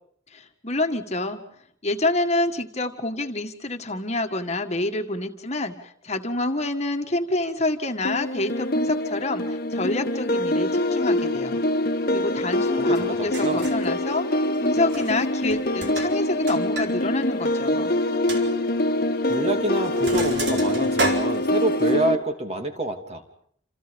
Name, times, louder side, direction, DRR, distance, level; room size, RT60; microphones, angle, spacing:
voice 1, 0.3-1.4 1.8-11.6 12.1-17.9, left 2 dB, 35° left, 5 dB, 1.9 m, -27 dB
sound 1, 8.0-22.2, left 1 dB, 50° left, 1.6 m, -24 dB
voice 2, 12.8-13.7 19.3-23.2, right 1 dB, 35° right, 5 dB, 3.1 m, -27 dB
Sink (filling or washing), 12.9-13.0 13.3-13.9 14.8-15.2 15.5-16.9 17.2-17.3 17.7-17.8 18.3-18.4 19.3-19.5 19.8-21.9, right 2 dB, 65° right, 4.5 m, -31 dB
28.5 x 28.0 x 5.3 m, 0.62 s
head